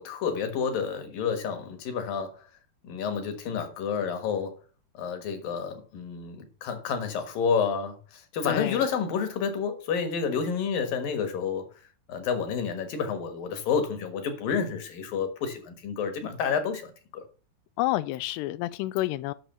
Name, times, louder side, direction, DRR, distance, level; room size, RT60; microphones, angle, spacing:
voice 1, 0.0-2.5 2.8-4.6 4.9-11.7 12.1-17.2, left 6 dB, 65° left, 3.0 m, -29 dB
voice 2, 8.5-8.8 17.8-19.3, left 16 dB, 90° left, 2.7 m, -29 dB
9.1 x 6.4 x 6.8 m
omnidirectional pair, 4.7 m